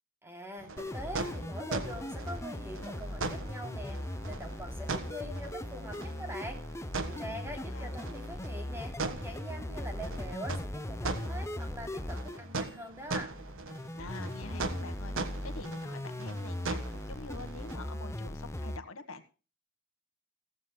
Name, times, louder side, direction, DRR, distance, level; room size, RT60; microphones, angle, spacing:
voice 1, 0.2-6.6 7.0-13.3, equal, 10° right, 3 dB, 3.1 m, -43 dB
sound 1, 0.6-17.8, right 3 dB, 65° right, 1.5 m, -41 dB
sound 2, 0.8-18.8, left 1 dB, 15° left, 0.6 m, -39 dB
voice 2, 7.2-8.0 14.0-19.3, left 3 dB, 70° left, 8 dB, 1.5 m, -46 dB
17.0 x 15.0 x 2.2 m, 0.34 s
head